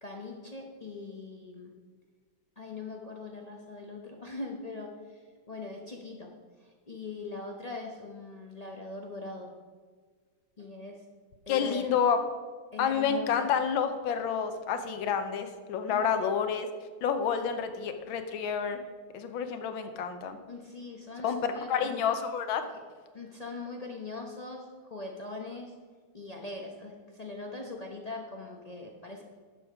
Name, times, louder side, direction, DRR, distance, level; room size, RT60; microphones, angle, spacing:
voice 1, 0.0-1.7 2.6-6.3 6.6-9.5 10.6-11.0 11.5-12.0 12.7-13.5 15.9-16.2 20.5-22.0 22.7-22.8 23.1-25.7 26.1-29.2, left 3 dB, 50° left, 1 dB, 0.4 m, -41 dB
voice 2, 11.5-12.2 12.8-16.7 17.0-18.8 19.1-20.4 21.2-22.7, left 7 dB, 80° left, 8 dB, 1.6 m, -29 dB
11.0 x 7.1 x 4.9 m, 1.5 s
omnidirectional pair, 2.2 m